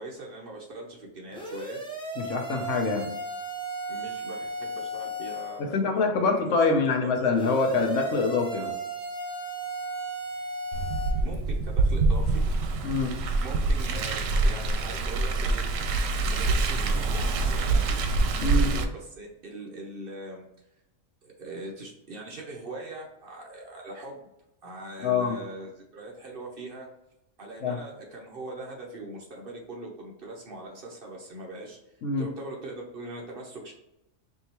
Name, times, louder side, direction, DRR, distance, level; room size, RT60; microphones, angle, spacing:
voice 1, 0.0-1.8 3.9-7.1 11.2-12.4 13.4-15.7 16.2-18.0 18.3-20.4 21.2-24.3 24.6-26.9 27.4-33.7, right 2 dB, 50° right, -1 dB, 0.9 m, -41 dB
sound 1, 1.3-5.6 7.3-11.1, right 1 dB, 5° left, 0.6 m, -35 dB
voice 2, 2.2-3.1 5.6-8.7 12.8-13.2 18.4-18.7 25.0-25.4 27.6-27.8 32.0-32.3, left 4 dB, 75° left, 3 dB, 1.1 m, -25 dB
Car, 10.7-18.8, right 3 dB, 90° right, 1.0 m, -25 dB
4.6 x 2.7 x 2.9 m, 0.90 s
omnidirectional pair, 1.3 m